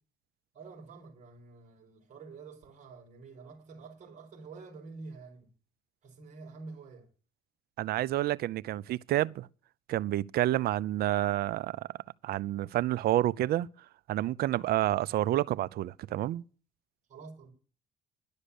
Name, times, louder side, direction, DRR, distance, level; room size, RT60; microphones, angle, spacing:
voice 1, 0.5-5.5 6.0-7.1 17.1-17.5, right 4 dB, 45° right, 4.9 m, -48 dB
voice 2, 7.8-9.5 9.9-11.9 12.2-13.7 14.1-16.4, right 14 dB, 65° right, 0.6 m, -29 dB
11.5 x 6.7 x 8.4 m
cardioid pair, 110°, 17 cm